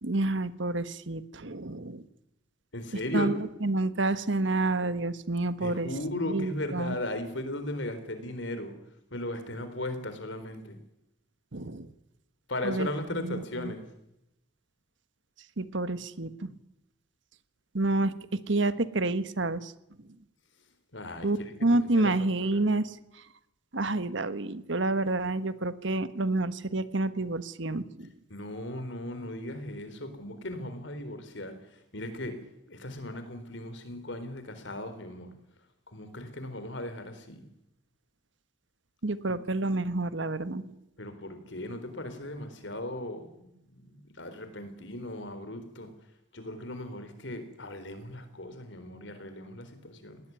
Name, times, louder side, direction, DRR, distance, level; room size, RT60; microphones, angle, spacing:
voice 1, 0.0-2.0 3.1-3.3 3.6-5.9 6.3-6.9 11.5-11.9 12.6-12.9 13.2-13.7 15.6-16.5 17.7-18.1 18.5-19.7 21.2-22.9 23.7-28.1 39.0-40.7, right 2 dB, 70° right, 13 dB, 1.4 m, -29 dB
voice 2, 2.7-3.3 5.6-8.7 9.1-10.8 12.5-13.9 20.9-22.1 22.4-22.7 28.3-35.3 35.9-37.4 41.0-45.9 46.3-50.2, left 1 dB, 65° left, 10 dB, 4.1 m, -37 dB
20.0 x 18.5 x 9.6 m, 0.84 s
head